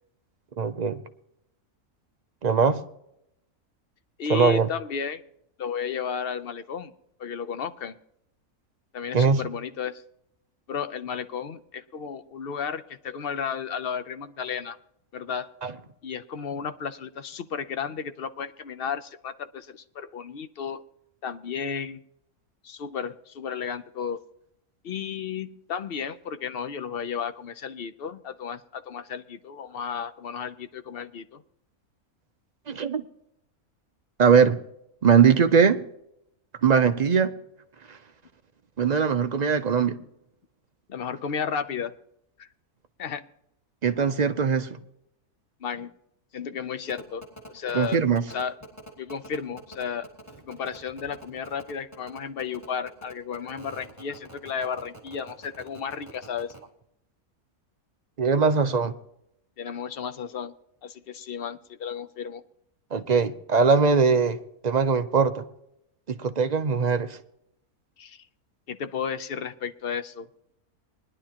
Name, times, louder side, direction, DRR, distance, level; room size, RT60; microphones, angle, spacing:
voice 1, 0.6-1.0 2.4-2.8 4.3-4.7 9.1-9.4 32.7-33.0 34.2-34.6 35.0-35.8 36.6-37.3 38.8-40.0 43.8-44.8 47.7-48.2 58.2-58.9 62.9-64.4 64.6-65.4 66.1-67.2, right 6 dB, 60° right, 8 dB, 0.4 m, -21 dB
voice 2, 4.2-5.2 5.6-6.9 7.2-7.9 8.9-10.0 10.7-14.8 15.1-15.5 16.0-20.8 21.2-22.0 22.6-24.2 24.8-31.4 40.9-41.9 42.4-42.5 43.0-43.3 45.6-45.9 46.3-47.2 47.5-48.0 48.3-48.6 49.0-50.1 50.4-56.5 59.6-60.5 60.8-62.4 68.0-68.3 68.7-70.3, left 7 dB, 50° left, 11 dB, 0.7 m, -33 dB
sound 1, 46.9-56.6, equal, 10° left, 2.9 m, -45 dB
20.5 x 11.0 x 2.9 m, 0.77 s
omnidirectional pair, 1.6 m